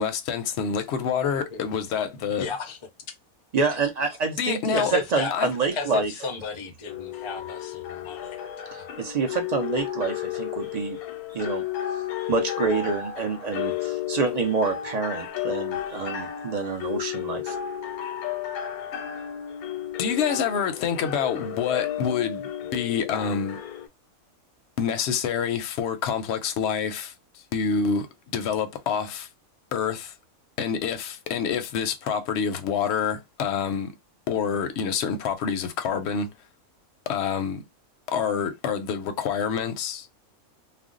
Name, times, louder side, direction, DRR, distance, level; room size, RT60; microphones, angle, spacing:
voice 1, 0.0-2.5 4.4-4.9 5.3-5.5 20.0-23.6 24.8-29.3 29.7-30.1 30.6-33.9 34.3-36.3 37.1-37.6 38.1-40.1, left 7 dB, 65° left, 0.7 m, -27 dB
voice 2, 2.4-2.8 4.7-5.3 5.8-8.4, left 5 dB, 45° left, 0.3 m, -33 dB
voice 3, 3.5-6.1 8.7-11.0 11.3-12.0 12.3-17.6, right 4 dB, 70° right, 0.4 m, -27 dB
sound 1, 6.9-23.9, left 11 dB, 85° left, 1.1 m, -33 dB
2.5 x 2.0 x 3.7 m
omnidirectional pair, 1.5 m